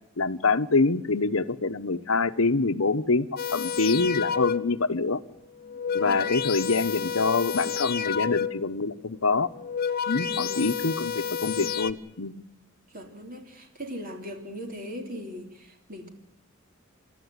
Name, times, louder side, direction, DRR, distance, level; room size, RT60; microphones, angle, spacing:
voice 1, 0.2-5.2 5.9-9.5 10.1-12.4, left 3 dB, 85° left, 12 dB, 1.1 m, -25 dB
sound 1, 3.4-4.8 5.6-8.8 9.5-11.9, left 7 dB, 45° left, 0.8 m, -30 dB
voice 2, 5.9-6.4 10.2-10.7 12.9-16.1, equal, 45° right, 4 dB, 3.3 m, -39 dB
28.5 x 13.0 x 9.7 m, 0.88 s
head